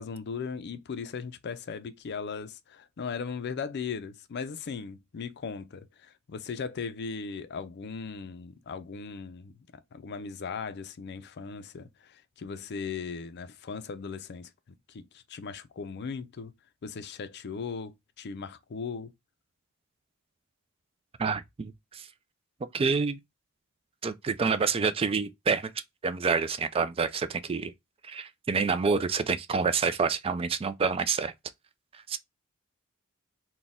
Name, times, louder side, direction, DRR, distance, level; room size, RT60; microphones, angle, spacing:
voice 1, 0.0-9.6 9.9-14.5 14.9-16.5 16.8-19.1, left 5 dB, 50° left, 0.4 m, -38 dB
voice 2, 21.2-22.1 22.7-23.2 24.0-25.7 26.0-27.7 28.0-31.3 32.1-32.2, right 5 dB, 25° right, 0.3 m, -28 dB
4.1 x 2.2 x 3.5 m
head